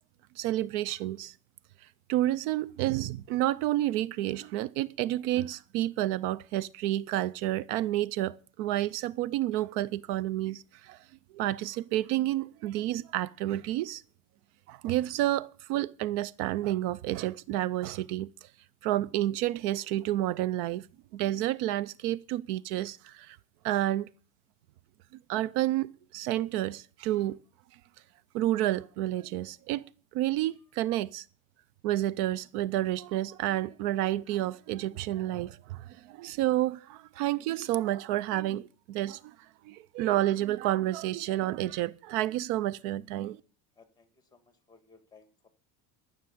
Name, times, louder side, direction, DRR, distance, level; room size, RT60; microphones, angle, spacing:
voice 1, 0.4-1.3 2.1-11.0 11.3-14.0 14.7-18.5 18.8-20.9 21.1-23.4 23.6-24.1 25.3-27.4 28.3-29.8 30.1-31.2 31.8-39.3 39.6-43.4, right 14 dB, 70° right, 0.7 m, -30 dB
voice 2, 43.8-44.4 44.7-45.5, left 4 dB, 10° left, 1.9 m, -59 dB
13.5 x 6.7 x 8.4 m
cardioid pair, 140°, 47 cm